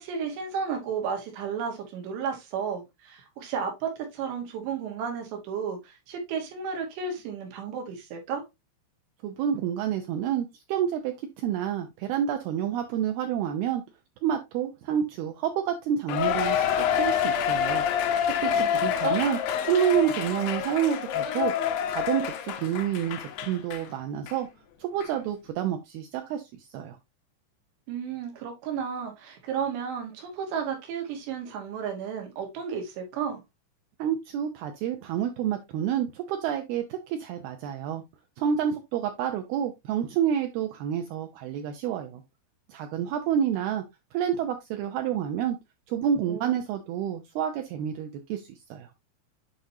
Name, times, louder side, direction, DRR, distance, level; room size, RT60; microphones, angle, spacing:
voice 1, 0.0-8.4 18.5-19.2 27.9-33.4 46.3-46.5, right 6 dB, 70° right, 3.6 m, -33 dB
voice 2, 9.2-13.8 14.2-17.8 18.3-19.4 19.6-21.5 21.9-24.5 24.8-27.0 34.0-38.0 38.4-42.2 42.7-43.8 44.1-45.6 45.9-48.9, right 9 dB, 90° right, 2.2 m, -29 dB
Cheering, 16.1-23.9 24.3-24.4 25.0-25.1, left 9 dB, 80° left, 2.1 m, -27 dB
8.4 x 5.0 x 2.7 m
omnidirectional pair, 5.3 m